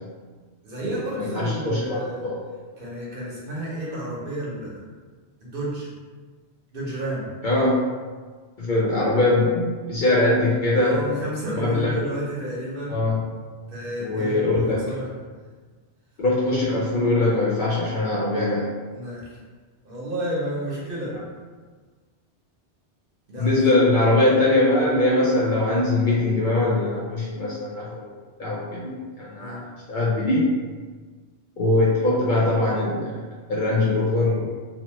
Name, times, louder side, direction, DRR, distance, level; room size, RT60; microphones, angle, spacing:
voice 1, 0.6-2.3 2.8-4.8 5.4-5.9 6.7-7.3 9.9-10.2 10.7-13.0 13.7-15.1 18.9-19.4 19.8-21.1 23.3-23.6 29.4-29.6, right 1 dB, 55° right, -5 dB, 0.9 m, -31 dB
voice 2, 1.2-2.4 7.4-7.8 8.6-11.0 11.5-12.0 12.9-13.3 14.0-14.8 16.2-18.7 23.4-27.9 28.4-30.5 31.6-33.2 33.5-34.5, left 2 dB, 60° left, -6 dB, 0.6 m, -22 dB
3.0 x 2.0 x 3.0 m, 1.5 s
omnidirectional pair, 1.2 m